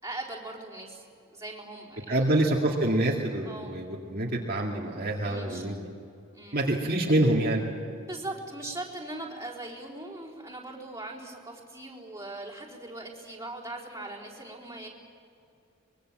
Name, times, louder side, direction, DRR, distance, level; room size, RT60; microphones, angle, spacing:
voice 1, 0.0-2.4 3.4-3.8 5.3-5.6 6.3-6.6 8.1-14.9, right 2 dB, 15° right, -4 dB, 4.3 m, -40 dB
voice 2, 2.1-5.8 6.5-7.6, right 1 dB, 45° right, -2 dB, 2.2 m, -26 dB
24.5 x 22.5 x 7.6 m, 2.5 s
head